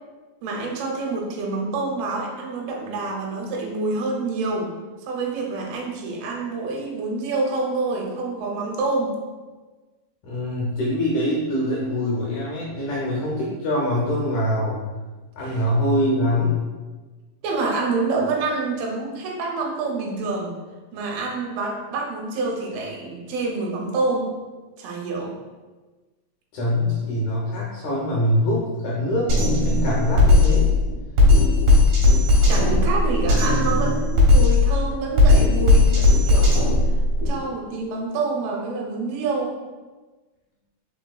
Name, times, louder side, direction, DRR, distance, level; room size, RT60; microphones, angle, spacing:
voice 1, 0.4-9.2 15.4-15.7 17.4-20.5 20.9-24.4 24.8-25.4 32.5-36.6 36.9-37.0 37.3-39.5, right 3 dB, 85° right, 0 dB, 2.6 m, -27 dB
voice 2, 10.2-14.8 15.4-16.6 26.5-30.7, left 1 dB, 70° left, -5 dB, 1.9 m, -24 dB
Drum kit, 29.3-37.3, left 2 dB, 65° right, 2.3 m, -17 dB
5.2 x 4.2 x 2.3 m, 1.3 s
omnidirectional pair, 4.3 m